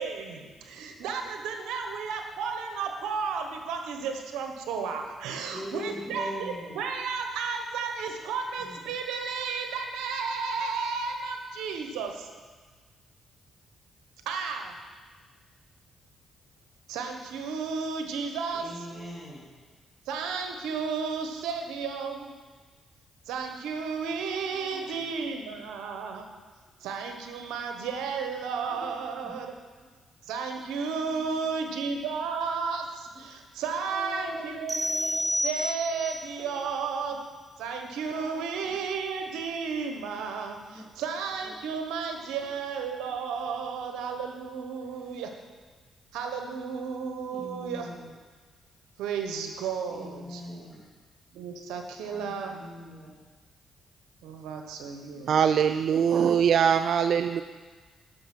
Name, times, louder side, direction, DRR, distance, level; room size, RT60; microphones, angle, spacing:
voice 1, 0.0-12.3 14.3-14.7 16.9-18.9 20.1-22.3 23.3-26.3 26.8-29.5 30.3-37.2 37.6-45.3 46.1-47.9 49.0-50.7 51.3-52.6 54.2-55.4, right 5 dB, 90° right, 4 dB, 1.2 m, -33 dB
voice 2, 5.5-6.8 8.7-8.8 18.5-19.5 24.5-25.2 28.7-29.0 29.2-29.3 31.0-31.4 33.9-34.6 38.1-38.4 40.7-40.8 41.5-41.6 42.1-42.2 44.8-45.3 47.3-48.0 49.9-50.8 52.0-53.1 55.1-55.2, left 1 dB, 15° left, -8 dB, 3.1 m, -41 dB
sound 1, 34.7-36.2, left 1 dB, 15° right, 2.4 m, -29 dB
voice 3, 55.3-57.4, right 8 dB, 65° right, 10 dB, 0.3 m, -22 dB
10.5 x 6.6 x 6.1 m, 1.4 s
supercardioid pair, 70°, 0 cm